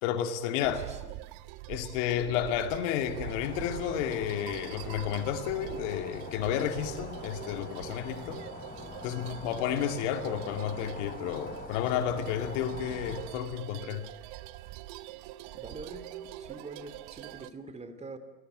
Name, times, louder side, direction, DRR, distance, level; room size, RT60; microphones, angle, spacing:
voice 1, 0.0-0.8 1.7-8.4 9.0-14.0, left 9 dB, 50° left, 7 dB, 2.4 m, -31 dB
voice 2, 0.6-1.2 15.5-16.1 16.4-18.2, right 3 dB, 15° right, 10 dB, 2.8 m, -44 dB
sound 1, 0.6-17.5, right 15 dB, 40° right, 1.1 m, -44 dB
sound 2, 3.1-13.2, left 3 dB, 20° left, 5.3 m, -44 dB
27.0 x 20.5 x 9.3 m, 1.1 s
figure-of-eight pair, 95°, 47 cm